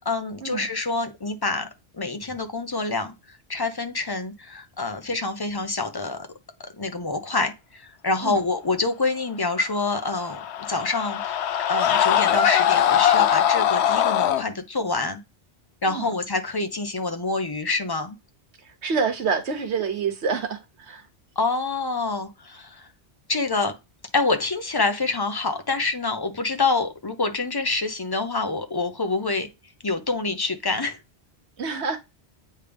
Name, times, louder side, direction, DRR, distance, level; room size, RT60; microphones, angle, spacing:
voice 1, 0.0-1.7 1.9-6.3 6.8-11.4 11.7-15.2 15.8-18.2 21.4-22.9 23.3-23.8 24.1-29.5 29.8-31.0, left 3 dB, 25° left, 0.7 m, -26 dB
Screaming, 10.0-14.4, left 10 dB, 75° left, 0.9 m, -21 dB
voice 2, 18.6-21.0 31.6-32.0, right 5 dB, 75° right, 1.3 m, -27 dB
8.4 x 3.3 x 3.4 m
omnidirectional pair, 1.1 m